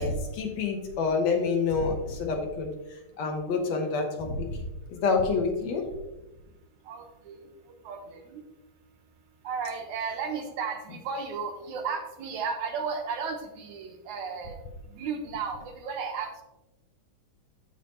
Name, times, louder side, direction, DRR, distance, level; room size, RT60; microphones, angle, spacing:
voice 1, 0.0-2.7 3.2-4.6 4.9-5.9, left 4 dB, 65° left, 2 dB, 2.0 m, -27 dB
voice 2, 6.9-7.4 7.8-8.4 9.4-14.6 14.9-16.4, right 5 dB, 75° right, 4 dB, 2.4 m, -34 dB
14.0 x 5.0 x 2.8 m, 1.0 s
omnidirectional pair, 3.6 m